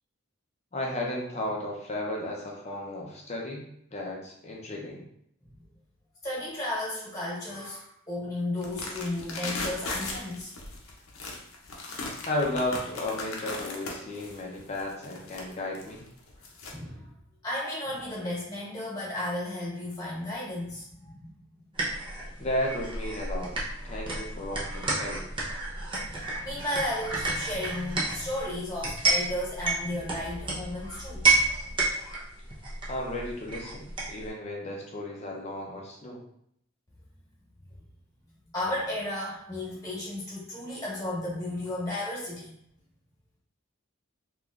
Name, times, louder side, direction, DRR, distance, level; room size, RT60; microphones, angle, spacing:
voice 1, 0.7-3.6 3.9-5.0 12.3-16.0 22.4-23.5 23.8-25.2 32.9-36.2, left 1 dB, 30° left, -1 dB, 0.6 m, -34 dB
voice 2, 6.2-10.5 16.6-17.1 17.4-21.3 25.9-31.3 31.6-31.8 38.5-42.5, left 1 dB, 15° left, -7 dB, 1.4 m, -34 dB
sound 1, 8.6-16.7, left 3 dB, 85° left, 0.7 m, -38 dB
sound 2, 21.7-34.3, right 3 dB, 25° right, 0.7 m, -31 dB
3.5 x 2.9 x 2.4 m, 0.71 s
head